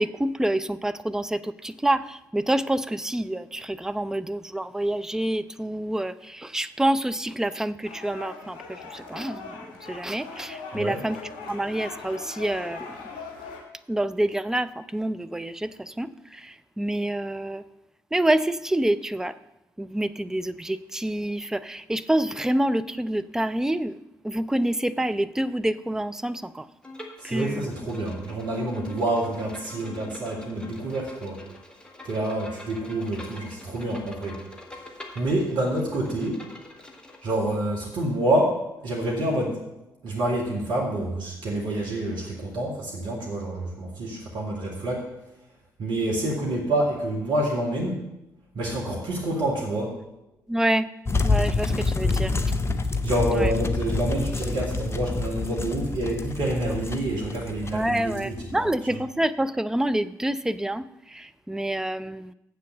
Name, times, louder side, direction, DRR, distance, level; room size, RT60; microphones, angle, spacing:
voice 1, 0.0-13.0 13.9-17.6 18.1-19.3 19.8-24.0 24.2-26.7 27.2-27.7 50.5-50.9 51.2-52.3 53.4-53.5 57.7-62.3, right 1 dB, 5° right, 12 dB, 0.4 m, -27 dB
sound 1, 7.8-13.6, left 4 dB, 65° left, 1.6 m, -40 dB
Bowed string instrument, 26.8-37.4, left 2 dB, 10° left, 1.8 m, -45 dB
voice 2, 27.2-31.4 32.0-34.4 35.2-36.4 37.2-39.6 40.0-45.1 45.8-48.0 48.5-50.0 53.0-58.7, right 1 dB, 55° right, -3 dB, 1.9 m, -27 dB
sound 2, 51.1-58.7, left 3 dB, 25° left, 0.8 m, -27 dB
7.6 x 6.9 x 6.6 m, 0.89 s
figure-of-eight pair, 40°, 10 cm